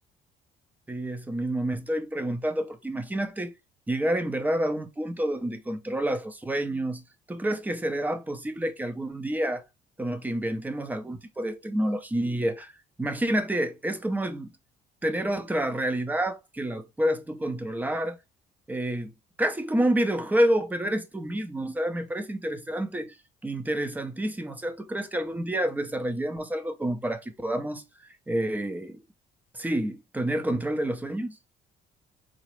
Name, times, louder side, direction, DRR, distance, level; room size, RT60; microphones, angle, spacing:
voice 1, 0.9-3.6 3.9-7.0 7.3-9.6 10.0-12.7 13.0-14.5 15.0-18.2 18.7-19.1 19.4-23.2 23.4-27.8 28.3-29.0 29.5-31.4, right 1 dB, 10° right, 0.5 m, -28 dB
3.8 x 2.0 x 3.0 m
cardioid pair, 110°, 17 cm